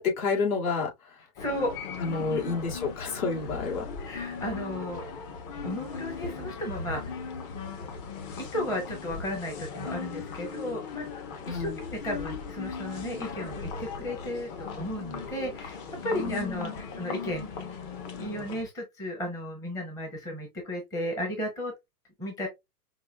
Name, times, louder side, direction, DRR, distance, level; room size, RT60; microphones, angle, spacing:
voice 1, 0.0-1.3 2.0-3.9 11.4-11.8 16.1-16.8, left 4 dB, 60° left, 2.4 m, -30 dB
sound 1, 1.4-18.6, left 5 dB, 35° left, 0.9 m, -38 dB
voice 2, 1.4-1.7 2.0-2.6 4.0-5.1 5.6-7.2 8.4-11.1 11.4-17.7 18.2-21.7 22.2-22.5, equal, 5° left, 0.6 m, -34 dB
5.5 x 2.3 x 2.2 m
hypercardioid pair, 140°, 48 cm